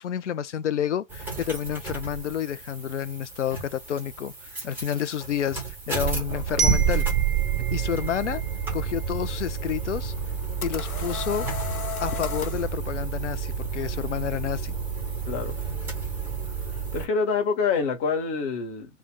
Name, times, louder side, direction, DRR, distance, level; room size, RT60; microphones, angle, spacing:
voice 1, 0.0-7.1 7.7-8.4 8.7-10.1 10.6-11.6 12.0-14.8, left 9 dB, 60° left, 0.6 m, -30 dB
sound 1, 1.1-17.1, right 7 dB, 5° right, 1.0 m, -30 dB
Glockenspiel, 6.6-9.4, right 5 dB, 45° right, 0.4 m, -32 dB
sound 2, 10.2-12.7, left 7 dB, 90° left, 0.8 m, -35 dB
voice 2, 15.3-15.6 16.5-19.0, left 5 dB, 25° left, 1.3 m, -27 dB
2.5 x 2.4 x 3.7 m
figure-of-eight pair, 125°, 41 cm